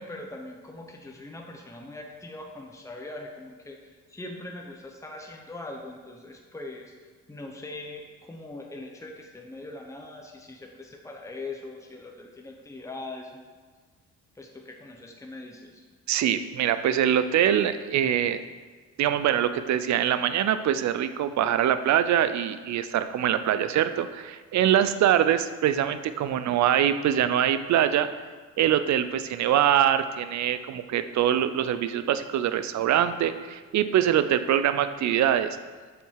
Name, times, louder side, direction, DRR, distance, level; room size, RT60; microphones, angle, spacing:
voice 1, 0.0-6.9 7.3-13.4 14.3-15.8, left 2 dB, 10° left, 1 dB, 1.1 m, -41 dB
voice 2, 16.1-18.4 19.0-28.1 28.6-35.6, right 10 dB, 65° right, 11 dB, 0.6 m, -24 dB
7.3 x 7.0 x 4.7 m, 1.5 s
cardioid pair, 90°, 30 cm